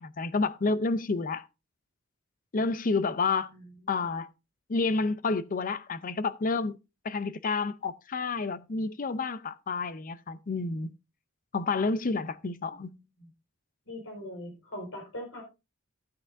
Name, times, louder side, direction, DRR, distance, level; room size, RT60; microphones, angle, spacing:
voice 1, 0.0-1.5 2.5-3.5 3.9-4.3 4.7-6.8 7.0-10.9 11.5-12.9, left 3 dB, 40° left, 0.6 m, -29 dB
voice 2, 13.9-15.4, left 1 dB, 70° left, 4.7 m, -40 dB
13.0 x 8.6 x 2.6 m
head